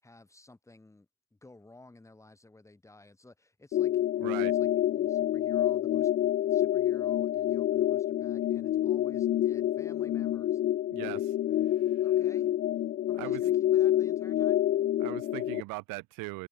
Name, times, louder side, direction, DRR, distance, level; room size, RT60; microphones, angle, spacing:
voice 1, 0.0-10.6 11.0-11.2 12.0-12.5 13.1-14.6, left 2 dB, 10° left, 6.6 m, -55 dB
sound 1, 3.7-15.6, left 12 dB, 35° left, 0.5 m, -27 dB
voice 2, 4.2-4.5 10.9-11.2 13.2-13.4 15.0-16.5, right 25 dB, 75° right, 0.7 m, -39 dB
cardioid pair, 150°, 33 cm